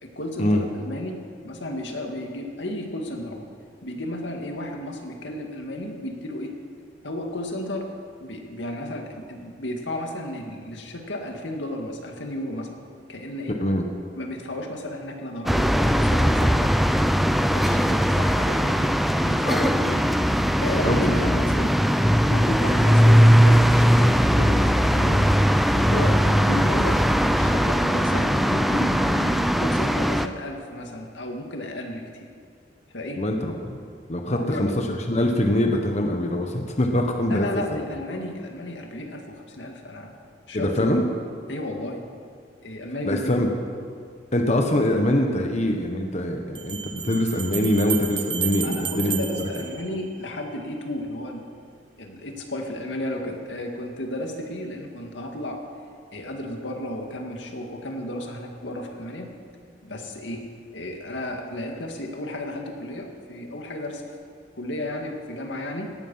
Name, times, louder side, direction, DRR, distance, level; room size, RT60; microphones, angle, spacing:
voice 1, 0.0-3.5 3.8-6.5 7.0-7.9 8.2-12.8 13.1-13.6 14.2-17.1 17.5-19.0 19.2-20.1 20.6-21.7 22.3-25.3 25.7-32.3 32.9-33.2 34.3-34.8 37.3-40.1 40.5-40.8 41.5-42.0 42.6-43.5 48.6-51.4 52.0-55.6 56.1-59.3 59.8-64.0 64.6-66.0, left 1 dB, 85° left, 2 dB, 2.1 m, -33 dB
sound 1, 15.5-30.3, equal, ahead, 0.4 m, -19 dB
voice 2, 33.2-33.8 34.1-37.8 40.5-41.0 43.0-43.5 44.3-49.5, left 1 dB, 40° left, 3 dB, 1.2 m, -23 dB
sound 2, 46.5-50.5, right 8 dB, 25° right, 0.9 m, -32 dB
17.5 x 13.0 x 5.7 m, 2.2 s
head